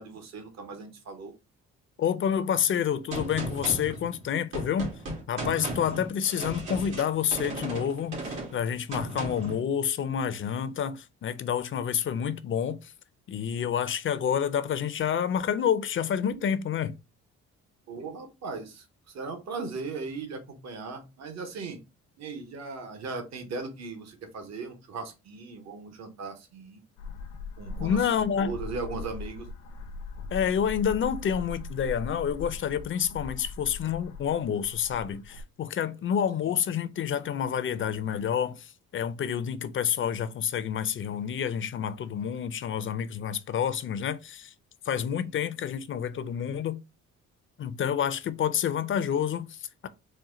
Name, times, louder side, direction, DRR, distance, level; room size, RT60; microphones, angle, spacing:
voice 1, 0.0-1.3 17.9-21.8 22.2-26.8 27.6-28.0 28.4-29.5 36.4-36.6 45.2-45.3, right 4 dB, 60° right, 1.1 m, -38 dB
voice 2, 2.0-4.9 5.3-12.9 13.3-17.0 27.8-28.6 30.3-44.5 44.8-46.8 47.6-49.9, left 8 dB, 45° left, 0.5 m, -28 dB
Gunshot gunfire, 3.1-9.6, right 2 dB, 80° right, 2.0 m, -36 dB
sound 1, 27.0-35.4, left 3 dB, 85° left, 0.7 m, -40 dB
4.3 x 2.2 x 3.7 m
cardioid pair, 90°, 30 cm